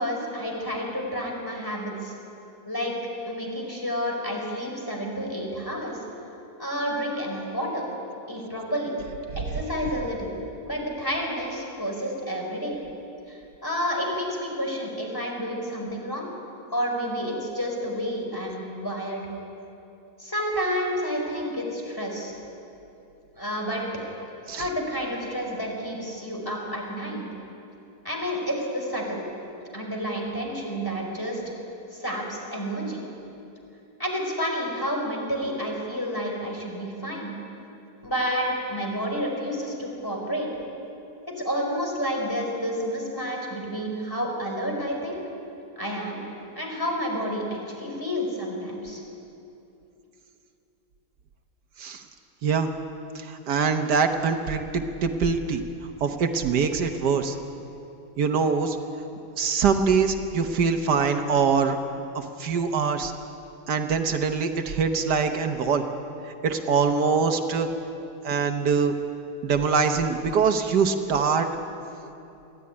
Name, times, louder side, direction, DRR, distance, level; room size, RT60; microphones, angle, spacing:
voice 1, 0.0-2.1 2.7-2.9 3.3-6.0 6.6-7.9 8.3-8.9 9.4-10.3 10.6-12.8 13.3-16.3 16.7-19.3 20.2-22.3 23.3-23.8 24.5-27.3 28.0-29.2 29.7-31.4 31.9-33.0 34.0-37.3 38.0-40.5 41.3-45.2 45.8-46.2 46.5-49.0, equal, 10° left, 0 dB, 4.6 m, -30 dB
voice 2, 53.1-55.6 56.0-57.4 58.2-58.8 59.4-61.8 62.1-63.1 63.7-65.8 66.4-67.7 68.2-68.9 69.4-71.5, right 5 dB, 80° right, 6 dB, 1.7 m, -23 dB
22.5 x 15.5 x 9.7 m, 2.8 s
omnidirectional pair, 1.8 m